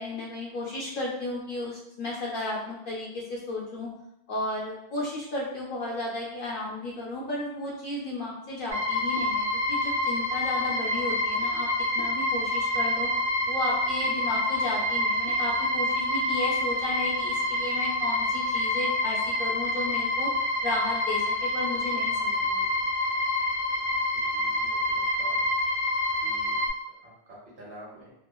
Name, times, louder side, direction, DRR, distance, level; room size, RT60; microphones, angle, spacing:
voice 1, 0.0-3.9 4.3-11.7 11.9-13.1 13.5-20.3 20.6-22.8, left 2 dB, 60° left, -4 dB, 0.6 m, -34 dB
sound 1, 8.7-26.7, left 1 dB, 35° right, 0.8 m, -27 dB
voice 2, 24.1-25.4 26.2-26.6 27.0-28.1, equal, 65° right, -5 dB, 1.1 m, -48 dB
2.9 x 2.2 x 2.2 m, 0.83 s
omnidirectional pair, 1.2 m